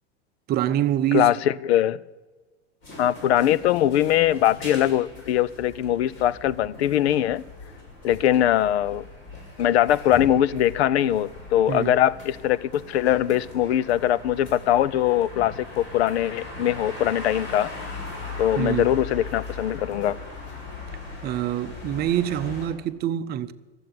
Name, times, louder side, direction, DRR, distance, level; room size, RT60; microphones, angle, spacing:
voice 1, 0.5-1.4 11.7-11.9 18.6-19.0 21.2-23.5, right 11 dB, 30° right, 0.6 m, -25 dB
voice 2, 1.1-2.0 3.0-7.4 8.0-9.0 9.6-18.0 18.4-20.2, left 11 dB, 75° left, 0.6 m, -22 dB
sound 1, 2.8-22.7, left 3 dB, 35° left, 6.3 m, -39 dB
13.5 x 7.8 x 9.4 m
hypercardioid pair, 120°, 32 cm